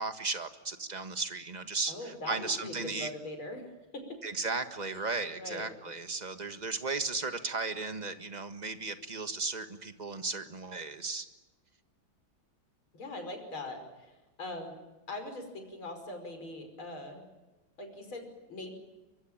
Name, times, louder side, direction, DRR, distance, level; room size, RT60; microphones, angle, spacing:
voice 1, 0.0-3.1 4.2-11.2, right 3 dB, 20° right, 8 dB, 1.6 m, -35 dB
voice 2, 1.9-3.7 3.9-4.2 5.4-5.7 12.9-14.1 14.4-14.8 15.1-17.2 17.8-18.8, left 2 dB, 80° left, 6 dB, 6.2 m, -41 dB
24.0 x 24.0 x 8.9 m, 1.1 s
omnidirectional pair, 2.2 m